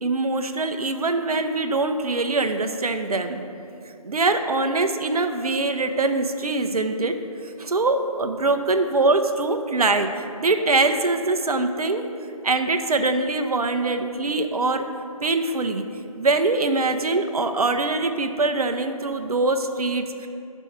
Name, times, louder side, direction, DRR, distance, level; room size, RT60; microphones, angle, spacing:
voice 1, 0.0-3.4 4.0-7.2 7.6-10.1 10.4-12.0 12.4-14.9 15.2-15.8 16.2-20.3, right 3 dB, 75° right, 7 dB, 0.6 m, -23 dB
5.5 x 5.3 x 6.4 m, 2.7 s
figure-of-eight pair, 165°, 19 cm